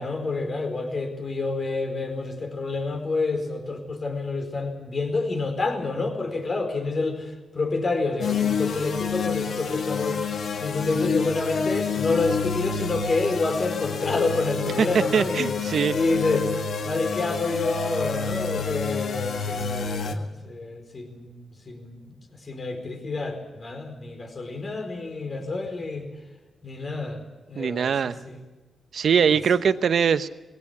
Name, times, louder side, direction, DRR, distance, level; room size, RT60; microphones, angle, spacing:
voice 1, 0.0-15.5 15.9-16.5 16.8-22.1 22.5-26.1 26.6-27.2 27.5-28.4, left 3 dB, 45° left, 5 dB, 4.6 m, -28 dB
sound 1, 8.2-20.2, left 5 dB, 70° left, 1.8 m, -28 dB
voice 2, 14.8-16.0 27.5-28.2 28.9-30.3, right 7 dB, 70° right, 12 dB, 0.9 m, -22 dB
21.0 x 17.0 x 8.6 m, 1.2 s
cardioid pair, 70°, 0 cm